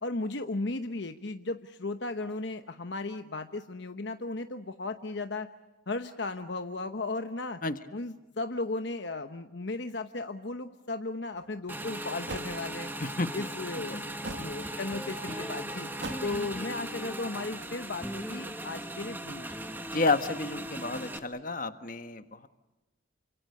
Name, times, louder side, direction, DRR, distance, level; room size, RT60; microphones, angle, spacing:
voice 1, 0.0-5.5 5.9-7.6 7.9-12.9 13.3-15.9 16.2-19.6, left 2 dB, 60° left, 8 dB, 1.0 m, -36 dB
sound 1, 11.4-11.5 12.3-12.5 14.2-14.5 16.0-16.4, right 2 dB, 60° right, 2.0 m, -38 dB
Motorcycle / Engine, 11.7-21.2, right 1 dB, 10° right, 1.4 m, -39 dB
voice 2, 13.0-13.5 13.9-14.0 19.9-22.5, left 3 dB, 40° left, 9 dB, 1.4 m, -31 dB
sound 2, 14.4-17.1 18.0-20.0, equal, 5° left, 1.3 m, -43 dB
29.0 x 25.5 x 6.6 m, 1.1 s
head